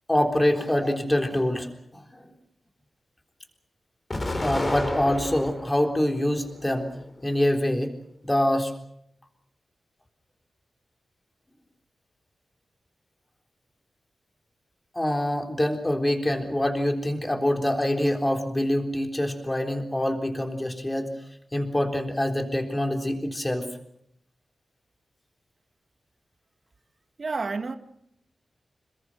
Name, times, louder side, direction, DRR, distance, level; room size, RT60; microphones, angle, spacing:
voice 1, 0.1-2.3 4.4-6.9 7.2-7.9 8.2-8.7 15.0-21.2 21.5-23.7, left 1 dB, 15° left, 3.7 m, -25 dB
Explosion, 4.1-5.7 6.3-7.2, left 2 dB, 30° left, 4.1 m, -31 dB
voice 2, 27.2-27.8, right 4 dB, 45° right, 1.9 m, -29 dB
27.0 x 22.0 x 6.4 m
wide cardioid pair, 130°, 0 cm